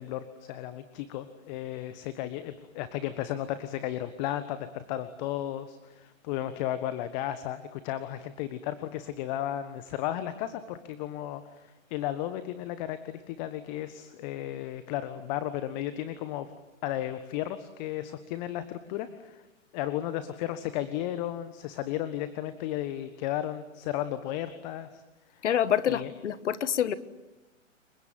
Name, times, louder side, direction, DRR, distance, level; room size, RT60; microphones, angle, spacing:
voice 1, 0.0-16.5 16.8-19.5 19.7-25.0 25.3-25.4 25.9-26.1, left 12 dB, 35° left, 12 dB, 1.5 m, -34 dB
voice 2, 25.4-26.9, left 9 dB, 60° left, 16 dB, 1.6 m, -26 dB
29.5 x 23.5 x 7.6 m, 1.1 s
figure-of-eight pair, 120°, 40 cm